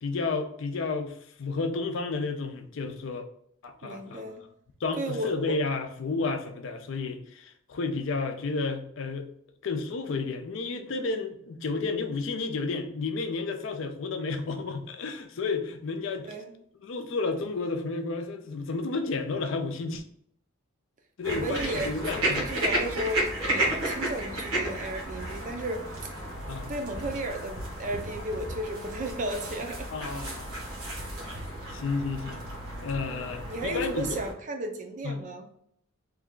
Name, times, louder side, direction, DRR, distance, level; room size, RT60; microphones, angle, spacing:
voice 1, 0.0-3.3 3.6-4.3 4.8-9.3 9.6-16.3 16.8-20.0 21.2-22.5 23.7-23.8 26.5-26.7 29.9-30.6 31.7-32.4 32.8-34.2 35.0-35.2, left 3 dB, 65° left, 7 dB, 0.4 m, -31 dB
voice 2, 3.8-4.4 5.0-5.6 16.2-16.5 21.3-26.1 26.7-29.9 33.1-35.5, right 1 dB, 35° right, 4 dB, 0.4 m, -34 dB
sound 1, 21.2-34.3, right 1 dB, 85° right, 1.1 m, -33 dB
3.2 x 2.3 x 3.7 m, 0.67 s
head